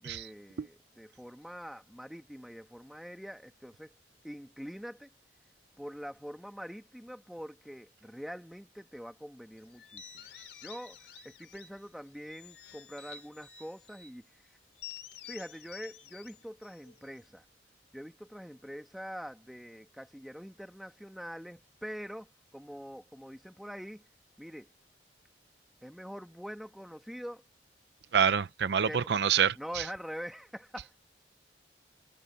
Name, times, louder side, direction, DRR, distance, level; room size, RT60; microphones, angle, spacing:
voice 1, 0.0-3.9 4.2-5.1 5.8-10.3 10.6-14.4 15.3-17.4 17.9-24.1 24.4-24.7 25.8-27.4 28.8-29.1 29.5-31.0, equal, ahead, 1.8 m, -44 dB
sound 1, 9.8-11.9 12.3-14.2 14.8-17.3, left 8 dB, 70° left, 4.3 m, -50 dB
voice 2, 28.1-29.5, right 7 dB, 65° right, 0.5 m, -26 dB
head